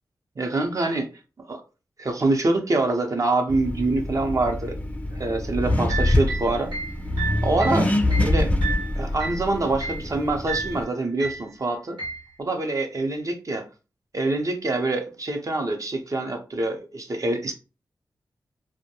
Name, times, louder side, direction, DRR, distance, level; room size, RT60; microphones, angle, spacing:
voice 1, 0.4-1.1 1.5-1.6 2.0-4.7 5.1-6.7 7.4-7.9 8.2-8.5 9.0-12.0 12.4-13.6 14.1-17.5, right 2 dB, 45° right, 0.6 m, -25 dB
Accelerating revving vroom, 3.5-10.8, left 1 dB, 20° left, 0.5 m, -25 dB
sound 1, 5.7-9.5 9.8-10.1 10.5-10.8 11.2-11.5 12.0-12.3, right 4 dB, 90° right, 0.8 m, -32 dB
2.2 x 2.1 x 2.8 m
cardioid pair, 55°, 8 cm